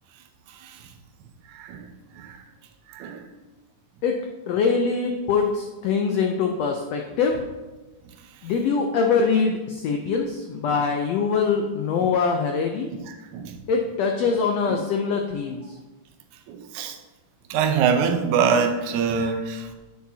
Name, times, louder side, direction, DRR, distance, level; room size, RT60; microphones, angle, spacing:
voice 1, 0.5-0.9 1.5-1.9 2.1-2.4 2.9-3.2 10.7-10.8 13.1-13.6 16.5-17.0 17.5-19.7, right 6 dB, 75° right, 4 dB, 2.1 m, -25 dB
voice 2, 4.5-7.4 8.4-12.9 13.7-15.7, left 5 dB, 80° left, 3 dB, 1.5 m, -23 dB
9.5 x 8.4 x 2.8 m, 1.2 s
omnidirectional pair, 3.6 m